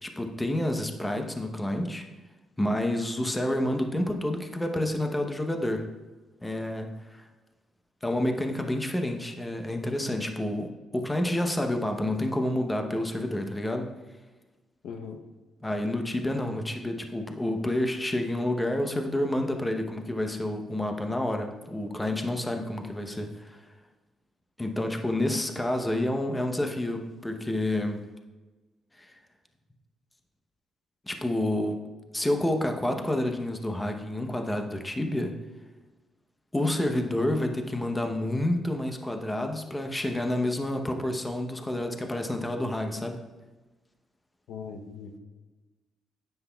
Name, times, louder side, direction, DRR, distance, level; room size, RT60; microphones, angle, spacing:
voice 1, 0.0-2.1 2.6-5.9 6.4-7.3 8.0-13.9 15.6-23.7 24.6-28.0 28.9-29.2 31.1-31.8 32.1-35.3 36.5-43.2, left 1 dB, 15° left, 5 dB, 0.8 m, -29 dB
voice 2, 14.8-15.2 44.5-45.2, left 6 dB, 75° left, 5 dB, 0.7 m, -39 dB
9.6 x 7.9 x 2.3 m, 1.2 s
cardioid pair, 90°, 0 cm